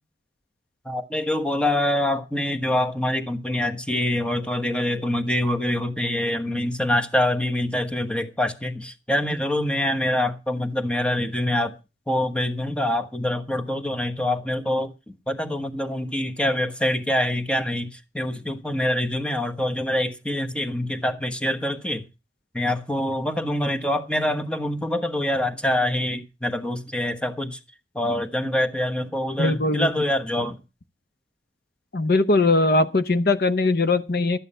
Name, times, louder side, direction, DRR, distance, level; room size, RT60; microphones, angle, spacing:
voice 1, 0.8-11.7 12.1-14.9 15.3-22.0 22.5-27.6 27.9-30.6, left 1 dB, 5° left, 1.2 m, -25 dB
voice 2, 29.4-29.9 31.9-34.4, left 2 dB, 60° left, 0.8 m, -20 dB
13.0 x 9.4 x 5.5 m
head